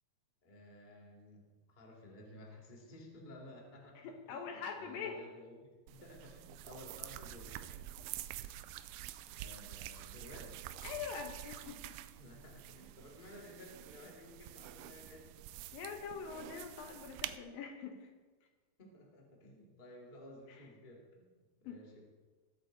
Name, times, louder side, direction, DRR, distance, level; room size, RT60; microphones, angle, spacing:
voice 1, 0.4-7.6 9.4-10.6 12.2-15.3 18.8-22.0, left 1 dB, 20° left, -2 dB, 1.5 m, -54 dB
voice 2, 4.0-5.2 10.8-11.9 15.7-18.1 21.7-21.8, left 6 dB, 70° left, 3 dB, 2.6 m, -44 dB
sound 1, 5.9-17.4, right 13 dB, 85° right, 2.5 m, -48 dB
20.5 x 8.2 x 4.0 m, 1.3 s
omnidirectional pair, 4.5 m